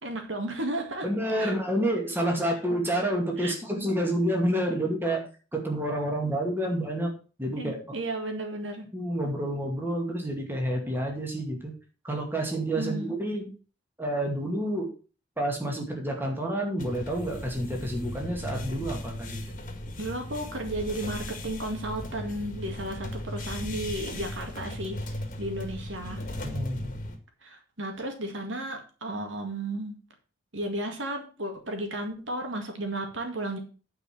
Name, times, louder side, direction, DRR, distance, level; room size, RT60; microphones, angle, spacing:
voice 1, 0.0-1.1 1.4-1.6 3.4-3.5 7.6-8.9 12.8-13.2 20.0-26.2 27.4-30.0 30.5-33.6, right 1 dB, 75° right, 4 dB, 2.0 m, -34 dB
voice 2, 1.0-5.2 5.5-7.1 7.4-8.0 8.9-11.7 12.0-13.5 14.0-14.9 15.4-19.4 26.4-26.9, right 1 dB, 10° right, 1 dB, 2.2 m, -29 dB
sound 1, 16.8-27.2, left 1 dB, 40° left, 1.8 m, -37 dB
9.7 x 4.9 x 6.1 m, 0.36 s
head